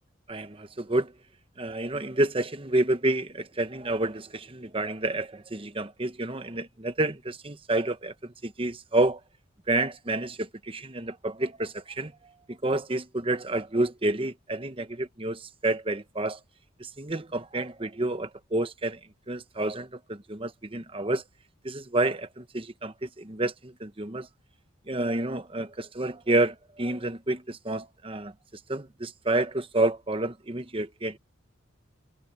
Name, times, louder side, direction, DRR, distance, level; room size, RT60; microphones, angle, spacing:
voice 1, 0.3-1.1 1.6-9.2 9.7-12.1 12.5-16.4 16.8-19.0 19.3-21.2 21.6-24.3 24.9-28.3 28.7-31.2, right 2 dB, 25° right, 1.0 m, -29 dB
head